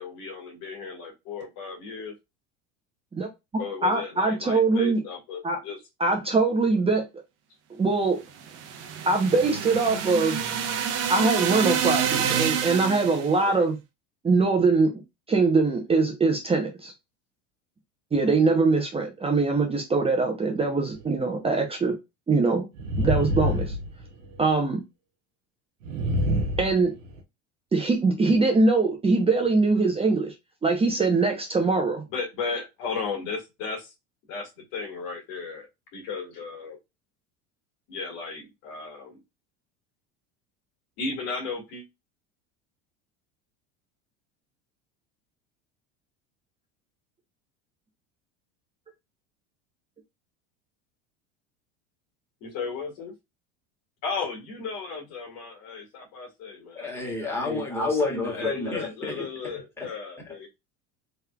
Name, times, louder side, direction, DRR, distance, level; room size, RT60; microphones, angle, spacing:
voice 1, 0.0-2.1 3.6-5.8 13.4-13.7 32.1-33.9 34.3-35.7 35.9-36.8 37.9-39.2 41.0-41.8 52.4-53.1 54.0-57.0 58.4-60.5, left 4 dB, 65° left, 1.9 m, -35 dB
voice 2, 3.5-5.0 5.4-5.6 6.0-7.1 7.8-8.2 9.1-10.4 11.1-13.7 14.2-15.0 15.3-16.9 18.1-22.0 22.3-22.7 23.0-23.7 24.4-24.8 26.6-26.9 27.7-30.3 30.6-32.0, right 3 dB, 15° right, 0.8 m, -22 dB
sound 1, 8.4-13.3, right 8 dB, 45° right, 0.9 m, -28 dB
sound 2, 21.0-21.1 22.8-24.4 25.8-27.2, equal, 90° right, 1.0 m, -26 dB
voice 3, 56.8-59.9, left 3 dB, 5° left, 1.7 m, -29 dB
3.6 x 3.2 x 2.3 m
supercardioid pair, 100°, 36 cm